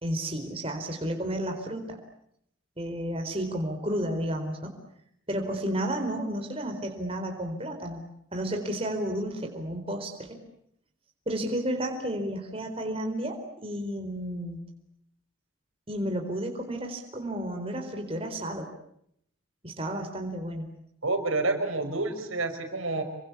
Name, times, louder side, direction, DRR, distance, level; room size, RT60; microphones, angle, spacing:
voice 1, 0.0-2.0 2.8-4.8 5.3-8.0 8.3-10.4 11.3-14.6 15.9-18.7 19.6-20.7, right 1 dB, 25° right, 4 dB, 4.3 m, -32 dB
voice 2, 21.0-23.0, right 2 dB, 85° right, 6 dB, 5.2 m, -28 dB
28.5 x 23.5 x 8.4 m, 0.73 s
head